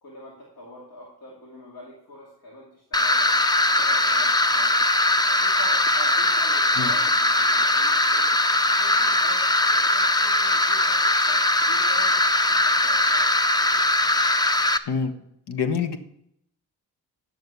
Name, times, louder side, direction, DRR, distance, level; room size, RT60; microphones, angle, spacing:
voice 1, 0.0-3.4 3.7-4.7 5.2-8.3 8.8-11.0 11.3-14.0, left 1 dB, 70° left, -4 dB, 2.6 m, -44 dB
sound 1, 2.9-14.8, left 2 dB, 10° left, 0.4 m, -20 dB
voice 2, 15.5-16.0, left 6 dB, 90° left, 8 dB, 1.2 m, -25 dB
11.0 x 6.6 x 6.8 m, 0.76 s
wide cardioid pair, 130°, 39 cm